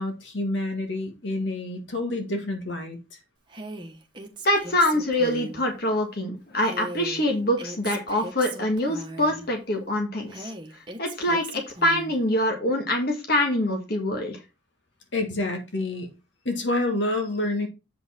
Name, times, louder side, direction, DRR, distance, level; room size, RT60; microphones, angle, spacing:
voice 1, 0.0-3.2 15.1-16.1 16.5-17.7, left 2 dB, 65° left, 1.7 m, -28 dB
Female speech woman speaking, 3.5-5.6 6.6-9.5 10.3-12.2, right 2 dB, 25° right, 1.2 m, -39 dB
voice 2, 4.4-10.5 11.0-14.4, left 1 dB, 50° left, 1.7 m, -25 dB
8.0 x 5.6 x 4.2 m
head